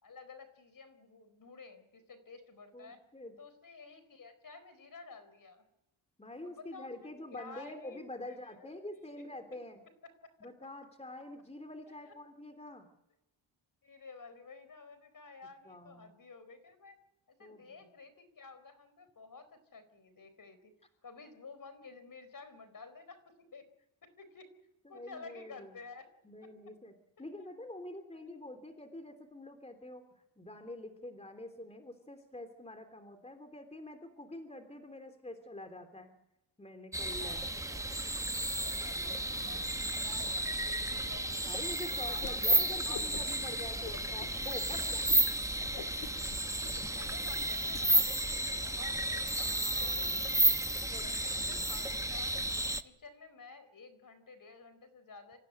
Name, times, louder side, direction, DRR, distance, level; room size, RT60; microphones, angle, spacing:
voice 1, 0.0-3.0 3.4-5.7 6.4-9.4 10.2-10.3 11.9-12.1 13.8-17.0 17.4-20.7 21.0-23.6 24.0-24.5 24.9-26.1 26.4-26.5 27.4-27.5 28.1-28.4 37.0-41.6 42.1-43.0 46.6-49.5 49.8-50.7 51.0-52.3 52.6-55.4, left 4 dB, 40° left, 12 dB, 4.4 m, -52 dB
voice 2, 2.7-3.3 6.2-9.8 10.4-12.9 15.7-16.1 17.4-17.9 24.8-25.8 26.2-30.1 30.4-36.1 36.6-37.5 38.9-39.6 41.4-45.1 49.4-50.2 50.9-51.8, left 1 dB, 15° left, 7 dB, 3.3 m, -47 dB
sound 1, 36.9-52.8, right 1 dB, 5° right, 1.0 m, -32 dB
Whoosh swoosh swish, 42.2-42.7 42.9-43.4 43.8-44.3 44.7-44.8 45.1-45.3 45.6-47.8, left 9 dB, 80° left, 2.2 m, -46 dB
26.0 x 15.5 x 9.5 m, 0.89 s
cardioid pair, 75°, 48 cm